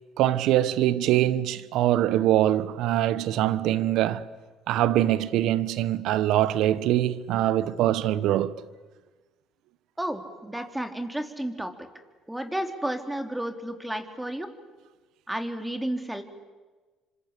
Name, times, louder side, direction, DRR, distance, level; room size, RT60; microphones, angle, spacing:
voice 1, 0.2-4.3 4.7-8.6, right 13 dB, 75° right, 1.2 m, -23 dB
voice 2, 10.0-11.7 12.3-14.5 15.3-16.2, right 1 dB, 5° right, 3.6 m, -32 dB
27.5 x 25.5 x 8.5 m
supercardioid pair, 80°, 0 cm